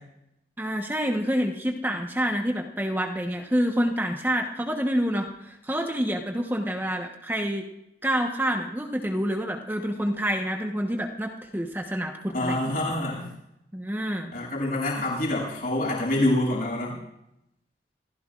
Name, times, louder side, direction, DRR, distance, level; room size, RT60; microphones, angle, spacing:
voice 1, 0.6-7.7 8.0-12.6 13.7-14.3, equal, 10° right, 2 dB, 1.1 m, -27 dB
voice 2, 12.3-13.3 14.3-17.0, left 1 dB, 50° left, -4 dB, 7.7 m, -26 dB
27.0 x 15.5 x 2.5 m, 0.83 s
head